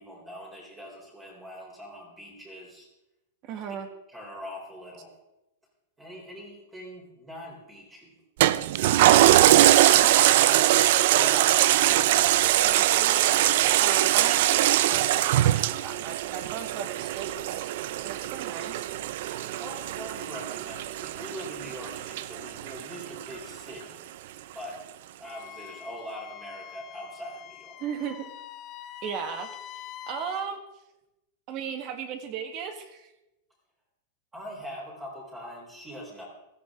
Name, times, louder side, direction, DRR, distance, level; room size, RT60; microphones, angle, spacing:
voice 1, 0.0-2.9 4.1-5.1 6.0-8.1 19.3-24.0 24.5-24.8 25.2-27.8 34.3-36.3, equal, 10° right, -3 dB, 3.7 m, -42 dB
voice 2, 3.4-3.9 10.0-10.5 10.7-17.7 18.0-18.9 27.8-28.3 29.0-29.5 30.1-30.6 31.5-33.1, right 7 dB, 35° right, 8 dB, 1.6 m, -36 dB
Toilet flush, 8.4-23.2 23.7-23.8, right 14 dB, 55° right, 0.5 m, -22 dB
Wind instrument woodwind instrument, 25.2-30.5, left 12 dB, 25° left, 0.7 m, -44 dB
16.0 x 14.0 x 3.7 m, 0.92 s
supercardioid pair, 165°, 0 cm